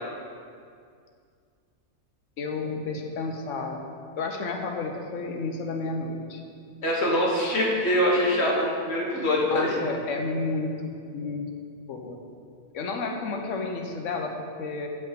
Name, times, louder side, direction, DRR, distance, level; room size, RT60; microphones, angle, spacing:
voice 1, 2.4-3.8 4.2-6.4 9.5-11.5 11.9-12.2 12.7-14.9, left 3 dB, 70° left, 3 dB, 1.2 m, -31 dB
voice 2, 6.8-9.7, left 1 dB, 55° left, -3 dB, 1.6 m, -24 dB
7.1 x 4.9 x 6.7 m, 2.2 s
omnidirectional pair, 1.3 m